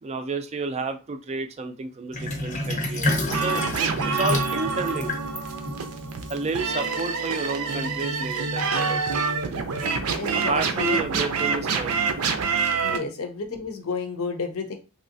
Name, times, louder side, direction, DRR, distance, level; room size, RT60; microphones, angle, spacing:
voice 1, 0.0-3.6 4.0-5.1 6.3-9.6 10.3-12.0 12.9-13.1, right 3 dB, 30° right, 8 dB, 0.3 m, -31 dB
Sink (filling or washing), 2.1-6.9, left 1 dB, 35° left, 0.6 m, -29 dB
sound 1, 3.3-13.0, right 5 dB, 85° right, 0.5 m, -27 dB
voice 2, 10.2-11.2 12.8-14.7, left 4 dB, 80° left, 6 dB, 0.7 m, -31 dB
3.1 x 2.7 x 2.6 m, 0.30 s
head